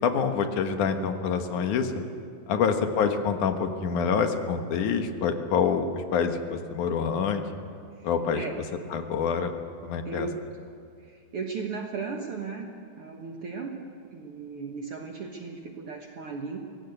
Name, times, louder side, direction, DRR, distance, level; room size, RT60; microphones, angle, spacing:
voice 1, 0.0-1.9 2.5-7.5 8.0-8.4 8.9-9.5 9.8-10.3, left 6 dB, 75° left, 6 dB, 2.8 m, -26 dB
voice 2, 10.1-10.4 11.0-12.7 13.0-16.6, right 4 dB, 55° right, 2 dB, 2.0 m, -36 dB
23.5 x 18.0 x 8.1 m, 2.3 s
omnidirectional pair, 3.6 m